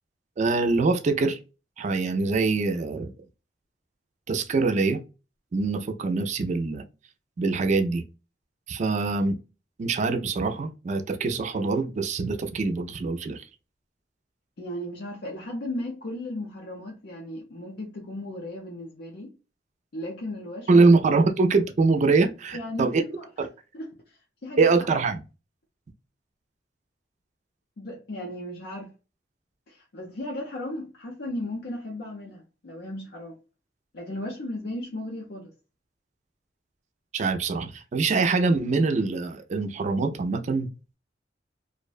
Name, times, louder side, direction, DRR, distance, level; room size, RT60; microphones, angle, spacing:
voice 1, 0.4-1.4 1.8-3.1 4.3-5.0 5.5-6.8 7.4-8.0 8.7-9.4 9.8-13.4 20.7-23.0 23.4-23.5 24.6-25.2 37.1-40.7, right 3 dB, 40° right, 0.3 m, -23 dB
voice 2, 14.6-19.4 19.9-20.9 22.5-23.5 23.7-24.7 27.8-28.9 29.7-33.4 33.9-35.5, left 1 dB, 65° left, 0.6 m, -36 dB
2.5 x 2.1 x 2.3 m
head